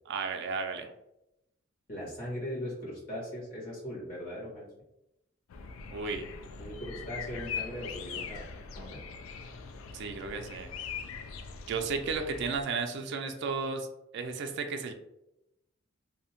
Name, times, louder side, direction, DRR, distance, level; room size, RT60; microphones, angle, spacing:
voice 1, 0.1-0.9 5.9-6.2 9.9-10.7 11.7-13.9 14.1-14.9, right 4 dB, 60° right, 5 dB, 0.3 m, -33 dB
voice 2, 1.9-4.7 6.6-8.4 8.7-9.0, equal, 45° left, -6 dB, 1.3 m, -39 dB
sound 1, 5.5-12.6, left 6 dB, 80° left, 0.3 m, -41 dB
2.7 x 2.1 x 2.8 m, 0.87 s
head